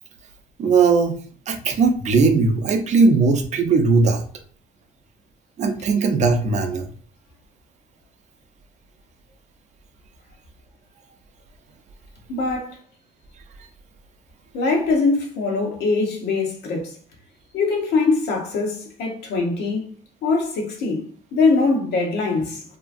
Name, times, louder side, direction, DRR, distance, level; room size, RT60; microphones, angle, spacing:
voice 1, 0.6-1.1 1.5-4.2 5.6-6.9, right 4 dB, 45° right, 0.5 m, -18 dB
voice 2, 12.3-12.8 14.5-17.0 17.5-19.9 20.2-21.0 21.3-22.6, left 3 dB, 85° left, 0.9 m, -22 dB
2.8 x 2.4 x 2.5 m
cardioid pair, 110°, 17 cm